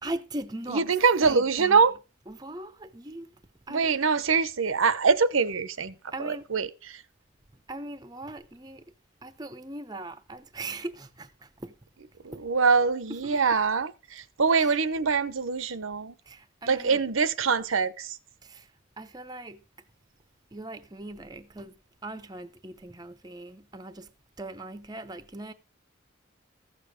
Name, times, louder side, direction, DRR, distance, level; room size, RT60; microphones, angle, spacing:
voice 1, 0.0-1.9 2.3-3.4 3.7-3.9 6.1-6.5 7.7-8.8 9.2-11.7 12.3-12.5 13.2-13.4 14.6-14.8 16.3-17.0 18.4-18.7 19.0-19.6 20.5-24.1 24.4-25.5, right 2 dB, 20° right, 0.7 m, -40 dB
voice 2, 0.7-1.9 3.7-7.0 12.2-16.1 16.7-18.2, right 5 dB, 80° right, 0.8 m, -24 dB
14.5 x 7.0 x 4.9 m
head